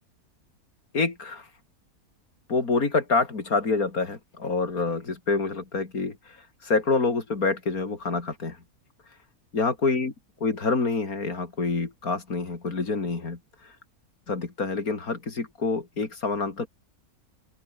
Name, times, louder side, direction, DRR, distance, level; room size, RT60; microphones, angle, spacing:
voice 1, 0.9-1.5 2.5-6.2 6.6-8.6 9.5-10.1 10.4-13.4 14.3-16.7, left 4 dB, 75° left, 3.7 m, -27 dB
open air
omnidirectional pair, 1.5 m